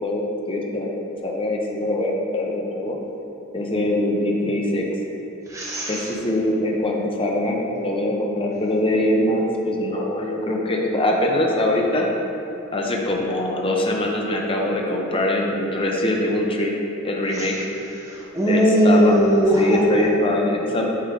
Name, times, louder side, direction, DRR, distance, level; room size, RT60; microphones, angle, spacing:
voice 1, 0.0-3.0 3.5-4.9 5.9-12.1 12.7-17.6 18.4-19.2 19.6-20.9, left 1 dB, 25° left, 0 dB, 0.7 m, -23 dB
voice 2, 5.5-6.1 17.3-17.7 18.0-20.1, equal, 15° right, -6 dB, 1.1 m, -19 dB
8.3 x 3.7 x 3.7 m, 3.0 s
head